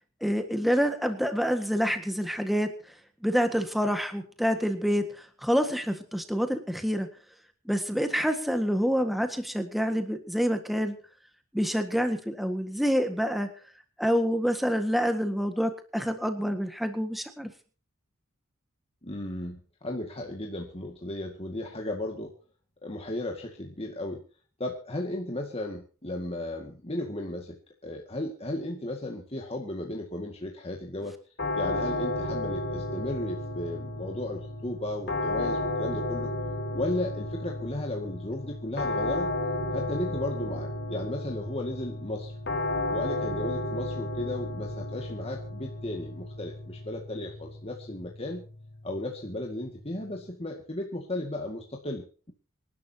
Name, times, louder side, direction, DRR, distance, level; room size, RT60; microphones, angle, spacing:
voice 1, 0.2-2.7 3.2-7.1 7.6-11.0 11.5-13.5 14.0-17.5, equal, ahead, 7 dB, 1.7 m, -27 dB
voice 2, 19.0-22.3 22.8-24.2 24.6-27.6 27.8-31.2 31.5-36.3 36.7-39.3 39.7-42.3 42.9-48.5 48.8-52.3, left 1 dB, 30° left, 1 dB, 2.0 m, -35 dB
sound 1, 31.4-50.3, left 2 dB, 50° left, 3.5 m, -33 dB
26.5 x 12.0 x 2.9 m, 0.39 s
head